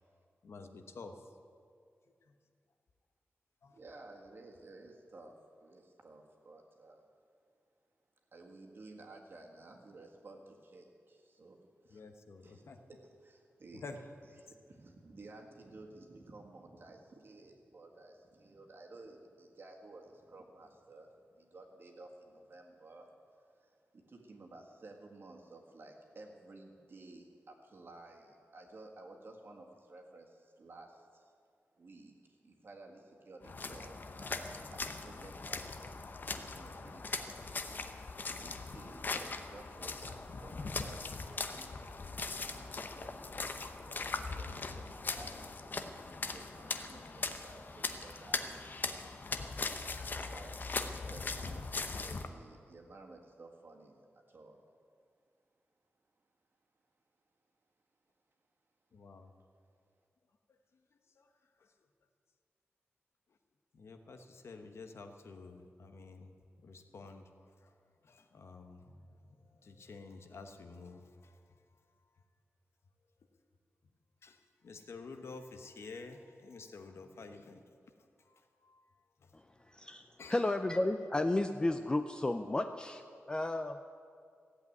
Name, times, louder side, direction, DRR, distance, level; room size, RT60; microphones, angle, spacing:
voice 1, 0.4-1.2 2.3-2.4 3.6-3.8 11.9-12.9 13.7-14.0 58.9-59.3 61.2-61.3 61.6-61.7 63.7-66.4 66.6-67.7 68.0-71.6 74.2-77.6 78.2-78.8 79.2-79.3 80.2-80.5, left 3 dB, 65° left, 6 dB, 1.1 m, -50 dB
voice 2, 3.7-7.1 8.3-12.0 12.4-12.6 12.9-13.8 14.4-23.1 23.5-31.3 31.8-36.0 36.5-37.7 38.3-42.0 42.4-45.9 46.1-49.2 50.0-50.6 50.9-54.0 54.3-54.6 59.2-59.3, right 2 dB, 50° right, 1 dB, 1.8 m, -54 dB
sound 1, 33.4-52.3, left 3 dB, 40° left, 0.8 m, -40 dB
voice 3, 79.3-83.0 83.3-83.8, left 2 dB, 20° left, 8 dB, 0.4 m, -33 dB
15.0 x 8.2 x 9.4 m, 2.3 s
wide cardioid pair, 170°, 5 cm